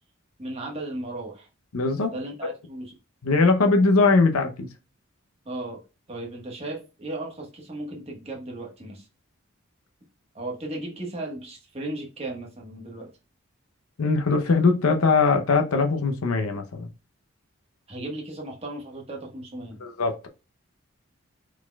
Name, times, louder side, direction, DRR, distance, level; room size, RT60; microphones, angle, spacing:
voice 1, 0.4-1.5 2.1-2.9 5.4-5.8 6.1-9.1 10.3-13.1 17.9-19.8, right 2 dB, 30° right, 1.3 m, -35 dB
voice 2, 1.7-2.1 2.4-2.5 3.2-4.7 14.0-16.9 19.8-20.3, left 3 dB, 85° left, 0.7 m, -21 dB
4.7 x 4.1 x 2.2 m
head